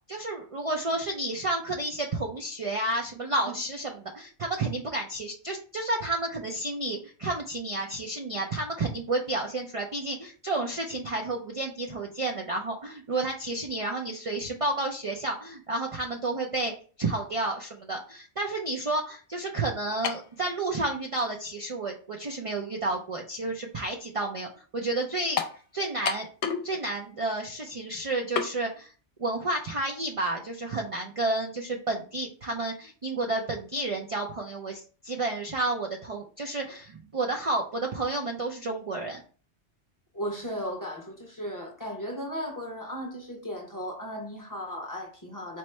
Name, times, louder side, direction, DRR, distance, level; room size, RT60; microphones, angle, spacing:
voice 1, 0.1-16.7 17.0-24.5 24.7-25.4 25.7-26.3 26.6-28.9 29.2-39.2, right 2 dB, 50° right, 0.4 m, -31 dB
sound 1, 20.0-20.3 21.2-21.3 25.4-25.6 26.1-26.7 27.0-27.1 28.4-28.5, left 7 dB, 70° left, 0.9 m, -29 dB
voice 2, 40.1-45.6, equal, 20° left, 0.7 m, -36 dB
4.5 x 2.1 x 4.4 m
omnidirectional pair, 1.2 m